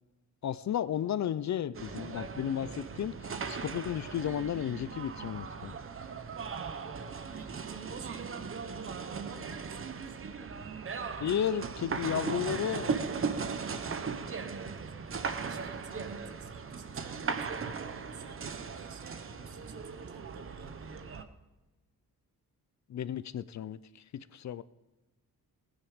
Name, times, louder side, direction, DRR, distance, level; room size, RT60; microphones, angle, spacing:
voice 1, 0.4-5.8 11.2-13.0 22.9-24.6, left 10 dB, 50° left, 16 dB, 0.5 m, -33 dB
sound 1, 1.7-21.2, right 5 dB, 35° right, 0.9 m, -38 dB
voice 2, 7.2-10.4 13.6-21.2, right 4 dB, 80° right, 8 dB, 1.7 m, -51 dB
19.0 x 10.0 x 5.1 m, 1.1 s
wide cardioid pair, 150°, 36 cm